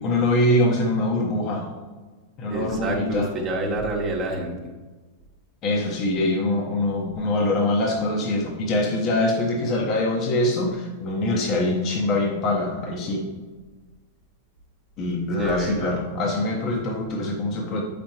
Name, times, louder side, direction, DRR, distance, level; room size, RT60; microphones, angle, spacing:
voice 1, 0.0-1.7 2.4-3.3 5.6-13.2 15.0-17.8, left 1 dB, 40° left, 0 dB, 1.0 m, -23 dB
voice 2, 2.5-4.5 15.4-15.9, right 2 dB, 35° right, -1 dB, 1.0 m, -27 dB
7.3 x 5.1 x 3.0 m, 1.3 s
hypercardioid pair, 100°, 0 cm